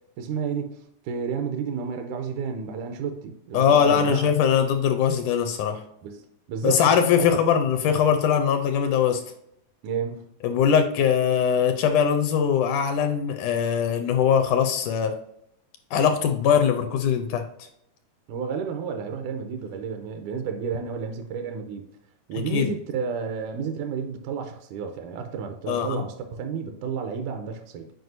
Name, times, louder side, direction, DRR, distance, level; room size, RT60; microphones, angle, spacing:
voice 1, 0.2-4.3 6.0-6.2 6.5-6.9 7.2-7.4 9.8-10.3 18.3-21.8 22.3-27.9, right 6 dB, 80° right, 1.9 m, -31 dB
voice 2, 3.5-5.8 6.6-9.2 10.4-15.1 15.9-17.7 22.5-22.7 25.7-26.0, left 7 dB, 80° left, 1.9 m, -21 dB
7.9 x 4.8 x 2.6 m
omnidirectional pair, 3.9 m